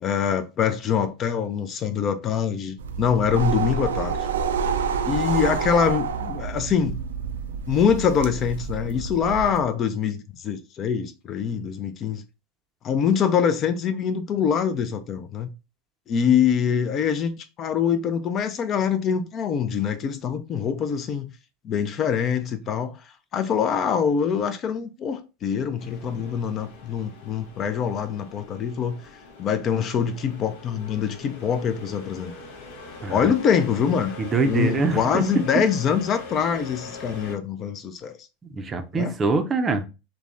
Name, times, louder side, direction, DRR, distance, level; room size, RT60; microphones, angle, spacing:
voice 1, 0.0-4.2 5.0-7.0 7.7-12.2 12.8-15.5 16.1-17.3 17.6-21.3 21.6-23.0 23.3-29.0 29.4-32.3 33.1-34.2 34.5-38.2 38.9-39.1, left 7 dB, 40° left, 0.4 m, -24 dB
sound 1, 2.8-9.6, right 6 dB, 90° right, 0.3 m, -28 dB
sound 2, 25.8-37.4, left 4 dB, 75° left, 0.7 m, -42 dB
voice 2, 34.2-35.2 38.4-39.9, right 3 dB, 25° right, 0.5 m, -24 dB
3.3 x 2.1 x 2.5 m
hypercardioid pair, 105°, 0 cm